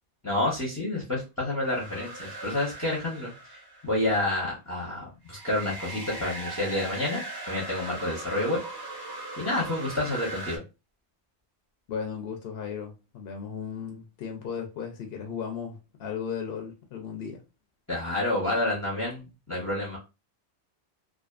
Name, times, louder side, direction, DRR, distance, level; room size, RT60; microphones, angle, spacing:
voice 1, 0.2-7.2 7.5-8.6 9.4-10.6 17.9-20.0, left 1 dB, 20° left, 0.6 m, -29 dB
sound 1, 1.6-4.1 5.3-10.6, right 2 dB, 25° right, 0.6 m, -39 dB
voice 2, 11.9-17.4, left 7 dB, 65° left, 0.7 m, -36 dB
2.5 x 2.4 x 2.3 m
omnidirectional pair, 1.2 m